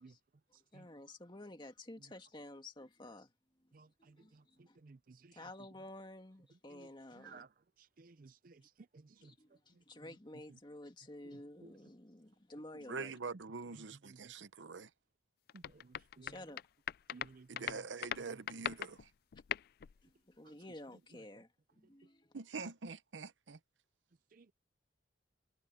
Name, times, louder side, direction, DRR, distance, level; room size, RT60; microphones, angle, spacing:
voice 1, 0.7-3.3 4.0-4.3 4.7-4.8 5.4-7.4 9.2-13.1 16.2-16.6 20.3-21.5 21.7-22.3, left 1 dB, 25° left, 2.1 m, -51 dB
voice 2, 7.2-7.5 8.0-8.6 9.2-9.3 11.6-11.7 15.5-15.6 16.2-16.3 17.1-17.6, right 4 dB, 50° right, 0.5 m, -55 dB
voice 3, 12.7-14.9 17.5-19.1 22.3-23.6, right 4 dB, 85° right, 0.8 m, -45 dB
sound 1, 15.5-16.6 16.9-20.0, left 10 dB, 55° left, 0.3 m, -40 dB
head